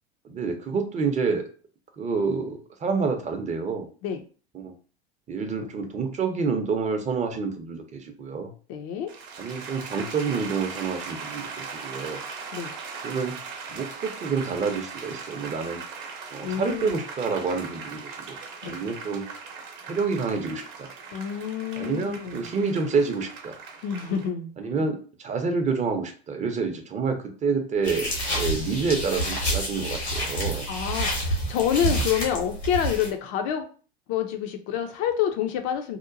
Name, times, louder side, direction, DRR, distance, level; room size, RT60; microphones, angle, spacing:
voice 1, 0.3-1.5 2.0-3.9 4.5-4.7 5.3-8.5 9.4-12.2 13.0-13.4 13.7-15.8 16.3-18.4 18.6-19.3 19.9-20.9 21.8-23.6 24.6-30.7, right 5 dB, 25° right, 5 dB, 0.6 m, -28 dB
voice 2, 8.7-9.1 12.5-12.8 16.4-16.9 18.6-18.8 21.1-22.5 23.8-24.8 30.5-33.6 34.1-36.0, left 9 dB, 45° left, 6 dB, 0.5 m, -28 dB
sound 1, 9.1-24.3, right 5 dB, 55° right, 0.8 m, -39 dB
sound 2, 27.8-33.1, right 1 dB, 85° left, 1.3 m, -28 dB
2.9 x 2.2 x 2.5 m, 0.39 s
figure-of-eight pair, 75°, 32 cm